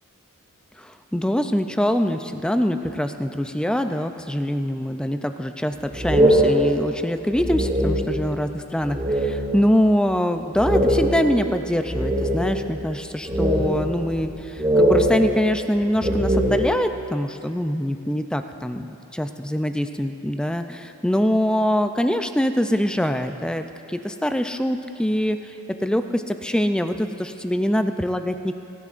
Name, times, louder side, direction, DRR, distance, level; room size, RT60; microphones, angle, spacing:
voice 1, 0.8-25.5 25.8-28.6, equal, 5° left, 7 dB, 0.4 m, -24 dB
sound 1, 5.9-8.4 8.8-9.7 10.0-10.1 10.5-12.7 13.2-14.3 14.6-16.9, equal, 20° right, 3.6 m, -21 dB
29.0 x 10.5 x 2.5 m, 2.7 s
head